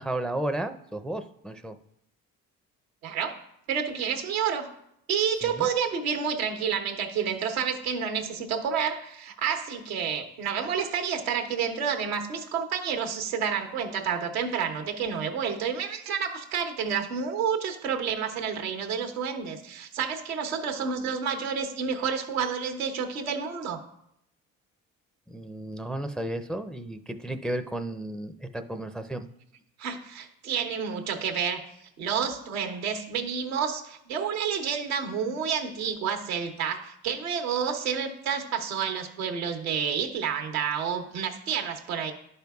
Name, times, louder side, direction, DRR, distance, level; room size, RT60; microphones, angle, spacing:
voice 1, 0.0-1.8 5.4-5.7 25.3-29.3, right 1 dB, ahead, 7 dB, 0.5 m, -33 dB
voice 2, 3.0-3.3 3.7-4.7 5.1-23.8 29.8-31.6 32.0-42.1, right 7 dB, 85° right, 4 dB, 1.0 m, -29 dB
11.5 x 5.4 x 2.3 m, 0.75 s
hypercardioid pair, 55°, 41 cm